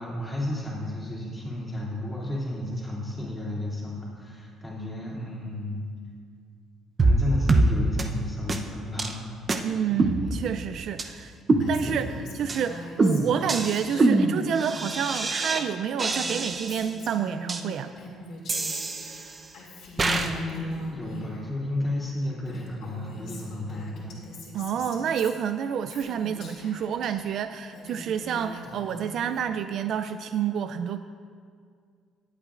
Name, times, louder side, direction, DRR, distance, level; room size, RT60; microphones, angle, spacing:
voice 1, 0.0-5.9 7.0-9.2 9.9-10.2 11.9-12.1 20.0-24.1 28.7-28.8, left 1 dB, 15° left, -5 dB, 2.7 m, -32 dB
sound 1, 7.0-7.2 7.5-7.7 8.0-8.1 8.5-8.6 9.0-9.1 9.5-9.6 10.0-10.6 11.0-11.1 11.5-12.1 12.5-12.6 13.0-15.6 16.0-16.9 17.5-17.6 18.5-19.5 20.0-20.3, right 2 dB, 25° right, 0.7 m, -24 dB
voice 2, 9.6-11.3 11.7-12.1 12.3-17.9 24.5-31.0, right 8 dB, 60° right, 9 dB, 0.3 m, -29 dB
Female speech woman speaking, 11.6-15.2 15.5-18.8 19.1-21.5 22.1-22.2 22.4-27.1 27.5-29.5, left 1 dB, 60° left, 2.4 m, -43 dB
19.5 x 8.2 x 2.5 m, 2.1 s
cardioid pair, 125°, 0 cm